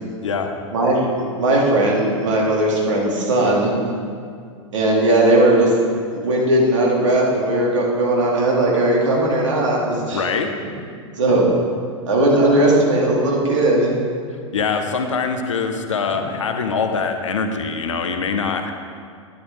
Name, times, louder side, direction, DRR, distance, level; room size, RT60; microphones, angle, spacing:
voice 1, 0.7-1.1 1.4-3.7 4.7-5.7 6.1-10.2 11.2-11.5 12.1-13.9, right 1 dB, 65° right, -3 dB, 2.4 m, -17 dB
voice 2, 10.1-10.5 14.5-18.7, left 5 dB, 65° left, 6 dB, 1.0 m, -23 dB
11.0 x 11.0 x 3.6 m, 2.2 s
figure-of-eight pair, 95°, 17 cm